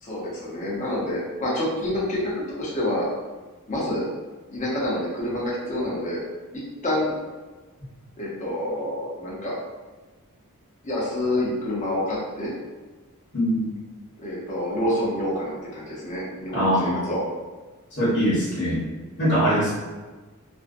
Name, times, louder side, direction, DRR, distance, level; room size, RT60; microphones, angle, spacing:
voice 1, 0.0-3.1 3.7-4.1 4.5-6.2 6.5-7.1 8.2-9.6 10.8-12.5 14.2-17.2 18.1-18.3, left 1 dB, 35° left, -5 dB, 0.7 m, -28 dB
voice 2, 13.3-13.7 16.5-17.1 18.0-18.8 19.2-19.7, equal, 50° left, -8 dB, 1.0 m, -22 dB
2.5 x 2.1 x 2.5 m, 1.3 s
head